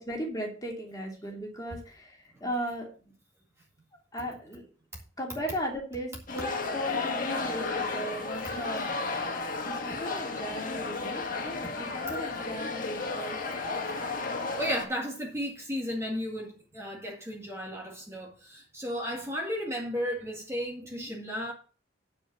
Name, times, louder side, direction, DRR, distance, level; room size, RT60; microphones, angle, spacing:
voice 1, 0.0-2.9 4.1-4.7 5.2-8.9 9.6-13.4 20.8-21.1, equal, 20° left, 2.9 m, -37 dB
sound 1, 6.3-14.8, left 3 dB, 45° left, 1.7 m, -33 dB
voice 2, 13.8-21.5, equal, 15° right, 1.9 m, -34 dB
9.8 x 5.0 x 7.1 m
head